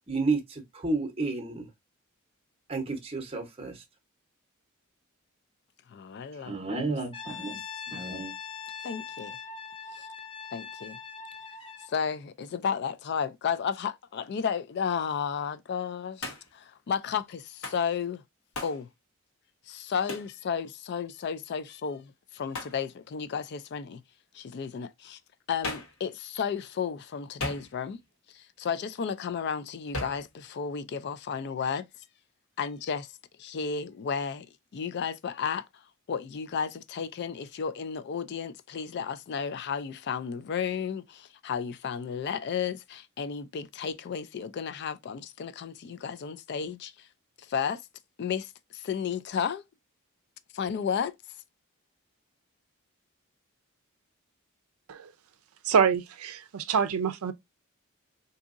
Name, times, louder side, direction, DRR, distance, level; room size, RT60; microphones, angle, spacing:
voice 1, 0.1-1.7 2.7-3.8 6.4-7.6 7.9-8.3, right 3 dB, 25° right, 0.7 m, -31 dB
voice 2, 5.9-6.5 7.3-7.6 8.8-9.4 10.0-10.1 10.5-11.0 11.9-18.2 18.6-18.9 19.7-24.0 24.3-25.2 25.5-28.0 28.3-31.9 32.6-33.1 33.4-34.5 34.7-35.6 36.1-46.9 47.5-47.8 48.2-49.6 50.5-51.1, left 7 dB, 50° left, 0.3 m, -33 dB
Brass instrument, 7.1-12.0, left 6 dB, 25° left, 0.7 m, -41 dB
Hands, 16.2-16.6 17.6-17.9 18.5-18.8 20.1-20.3 22.5-22.8 25.6-26.0 27.4-28.0 29.9-30.3, left 2 dB, 85° left, 1.1 m, -37 dB
voice 3, 55.7-57.3, right 6 dB, 90° right, 0.5 m, -25 dB
3.8 x 2.7 x 2.4 m
head